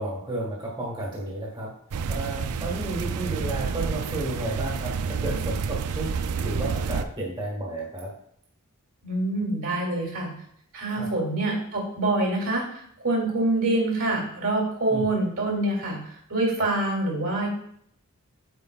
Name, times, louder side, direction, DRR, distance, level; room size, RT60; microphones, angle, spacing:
voice 1, 0.0-1.7 2.1-6.1 6.4-8.1 10.9-11.1 14.9-15.1, right 1 dB, 20° right, -4 dB, 1.5 m, -32 dB
sound 1, 1.9-7.0, right 5 dB, 90° right, 0.4 m, -29 dB
voice 2, 9.0-10.3 10.7-16.0 16.3-17.5, right 2 dB, 65° right, -3 dB, 2.4 m, -25 dB
8.0 x 5.2 x 2.4 m, 0.67 s
head